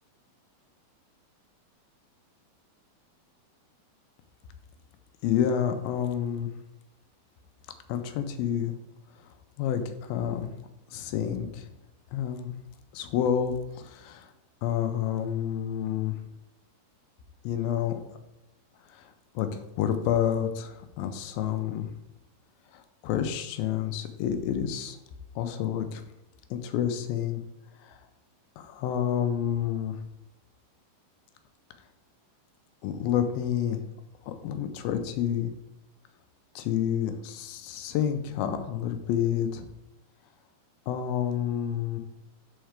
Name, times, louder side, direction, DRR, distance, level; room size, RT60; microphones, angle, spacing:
voice 1, 5.2-6.5 7.9-8.7 9.6-10.5 10.9-11.7 12.1-12.5 12.9-14.3 14.6-16.2 17.4-18.0 18.9-19.1 19.4-19.5 19.8-21.9 22.7-25.0 25.4-26.0 26.5-27.4 27.8-28.0 28.6-29.9 32.8-33.8 34.3-35.5 36.6-39.7 40.9-42.0, left 9 dB, 85° left, 7 dB, 2.5 m, -29 dB
6.5 x 4.5 x 5.0 m, 0.93 s
omnidirectional pair, 4.3 m